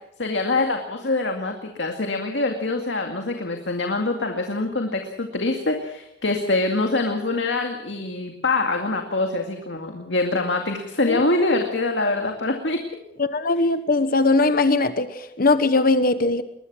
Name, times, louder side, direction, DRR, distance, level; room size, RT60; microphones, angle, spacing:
voice 1, 0.2-12.8, left 2 dB, 70° left, 3 dB, 2.2 m, -24 dB
voice 2, 13.2-16.4, left 3 dB, 50° left, 11 dB, 1.1 m, -20 dB
22.0 x 20.5 x 6.3 m, 0.82 s
head